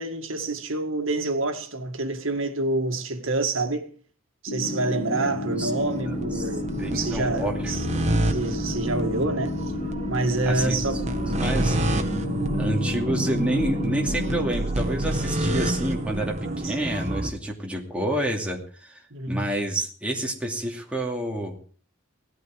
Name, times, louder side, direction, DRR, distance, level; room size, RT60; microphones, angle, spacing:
voice 1, 0.0-3.9 4.4-7.9 8.3-9.6 10.1-11.1 16.4-16.8 19.1-19.5, right 2 dB, 75° right, 2.0 m, -27 dB
sound 1, 4.5-14.5, left 2 dB, 55° left, 0.8 m, -33 dB
sound 2, 4.6-17.3, right 1 dB, 35° right, 1.5 m, -28 dB
voice 2, 5.2-5.7 6.1-6.5 6.8-7.5 7.9-8.1 10.5-10.8 11.3-11.8 12.6-21.6, right 1 dB, 5° right, 2.5 m, -29 dB
17.5 x 13.0 x 4.7 m
head